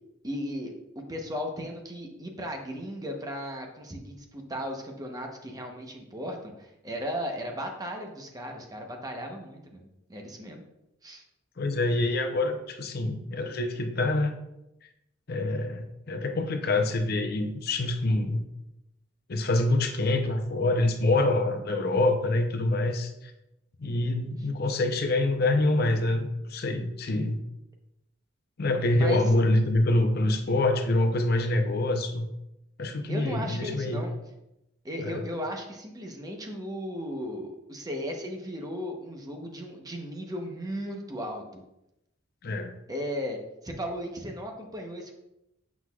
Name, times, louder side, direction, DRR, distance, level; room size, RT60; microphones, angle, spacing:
voice 1, 0.2-10.6 11.0-11.2 28.9-29.2 33.1-34.2 34.8-41.6 42.9-45.2, equal, 20° right, 2 dB, 0.9 m, -36 dB
voice 2, 11.6-14.3 15.3-18.4 19.3-23.3 23.8-27.4 28.6-32.3 32.8-34.0 35.0-35.3 42.4-42.7, left 2 dB, 55° left, 6 dB, 0.6 m, -26 dB
7.8 x 6.1 x 2.3 m, 0.87 s
head